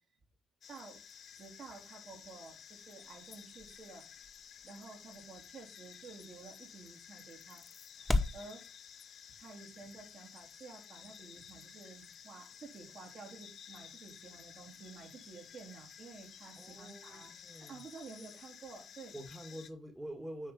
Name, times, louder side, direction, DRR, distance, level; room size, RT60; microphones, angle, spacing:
sound 1, 0.6-19.7, left 8 dB, 65° left, 0.8 m, -54 dB
voice 1, 0.7-1.0 1.4-4.1 4.6-7.6 8.3-8.7 9.4-19.1, right 4 dB, 60° right, 3.5 m, -52 dB
sound 2, 2.2-8.5, left 2 dB, 10° left, 0.9 m, -40 dB
voice 2, 16.6-17.8 19.1-20.5, right 1 dB, 15° right, 1.8 m, -46 dB
9.9 x 4.1 x 5.2 m
cardioid pair, 95°, 0 cm